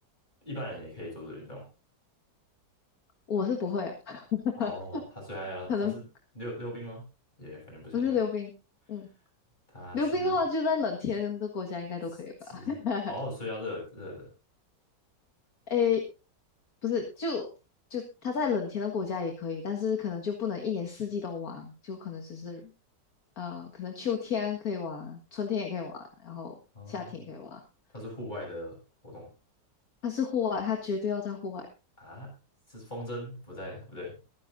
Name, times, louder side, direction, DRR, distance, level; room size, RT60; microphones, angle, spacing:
voice 1, 0.4-1.7 4.6-6.0 6.3-7.0 7.4-8.2 9.7-10.4 12.1-14.3 26.7-27.2 27.9-28.8 29.0-29.3 32.0-32.3 32.7-34.2, left 1 dB, 25° left, -2 dB, 7.6 m, -40 dB
voice 2, 3.3-5.0 5.7-5.9 7.9-8.5 8.9-9.1 9.9-13.1 15.7-16.0 16.8-17.5 17.9-22.7 23.4-25.9 26.2-26.5 26.9-27.6 30.0-31.7, left 6 dB, 55° left, 3 dB, 2.1 m, -31 dB
23.5 x 9.9 x 2.6 m, 0.30 s
omnidirectional pair, 1.9 m